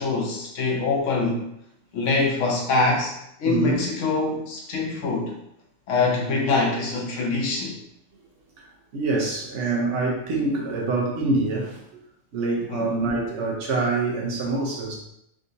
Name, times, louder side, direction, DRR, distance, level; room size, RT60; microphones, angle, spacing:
voice 1, 0.0-1.4 1.9-3.1 3.4-5.3 5.9-7.8 12.7-12.9, left 3 dB, 75° left, 0 dB, 1.0 m, -24 dB
voice 2, 3.4-3.8 8.6-8.7 8.9-11.8 12.3-15.0, right 3 dB, 70° right, -1 dB, 1.1 m, -25 dB
3.6 x 2.8 x 2.6 m, 0.78 s
omnidirectional pair, 1.3 m